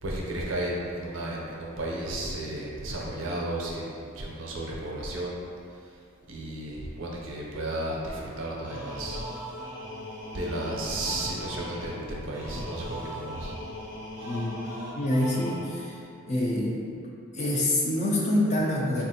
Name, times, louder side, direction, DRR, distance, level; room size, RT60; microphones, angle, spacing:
voice 1, 0.0-5.4 6.3-9.2 9.6-9.7 10.3-13.6, right 1 dB, 65° right, -3 dB, 0.5 m, -33 dB
sound 1, 8.6-16.0, equal, 60° left, 0.9 m, -39 dB
voice 2, 15.0-16.0 16.3-16.8 17.3-19.0, left 1 dB, 35° left, -4 dB, 0.4 m, -26 dB
3.5 x 2.4 x 2.7 m, 2.5 s
head